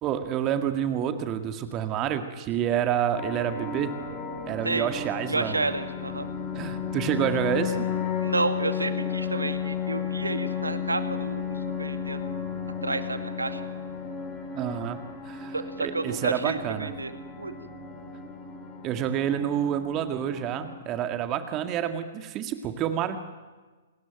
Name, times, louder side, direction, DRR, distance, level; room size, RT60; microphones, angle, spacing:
voice 1, 0.0-4.0 4.5-5.6 6.5-7.9 14.5-16.9 18.8-23.2, right 9 dB, 25° right, 8 dB, 1.9 m, -28 dB
sound 1, 3.2-20.7, left 7 dB, 25° left, 6.7 m, -33 dB
voice 2, 5.3-6.3 8.2-12.3 12.8-13.6 15.5-17.1 17.4-17.6, right 3 dB, 80° right, 9 dB, 2.2 m, -30 dB
28.0 x 20.0 x 9.2 m, 1.3 s
figure-of-eight pair, 115°, 0 cm